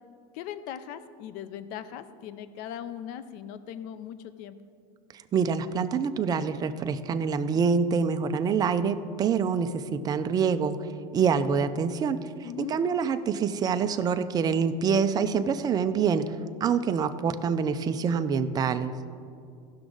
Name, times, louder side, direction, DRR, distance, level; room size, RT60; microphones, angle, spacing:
voice 1, 0.3-4.6 12.4-12.8, left 9 dB, 50° left, 13 dB, 0.5 m, -39 dB
voice 2, 5.3-10.8 11.1-16.2 16.6-18.9, right 6 dB, 20° right, 9 dB, 0.4 m, -26 dB
17.0 x 6.0 x 3.8 m, 2.4 s
supercardioid pair, 145°, 19 cm